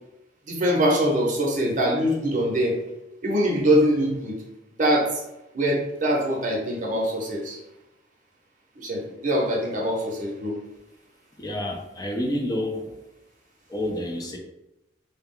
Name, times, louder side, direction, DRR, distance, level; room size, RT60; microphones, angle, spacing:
voice 1, 0.5-2.8 3.2-4.4 4.8-5.2 5.5-7.6 8.8-10.5, equal, 45° right, -2 dB, 0.7 m, -23 dB
voice 2, 11.4-13.0 13.7-14.4, left 1 dB, 20° left, 1 dB, 0.4 m, -29 dB
2.3 x 2.0 x 3.6 m, 0.90 s
head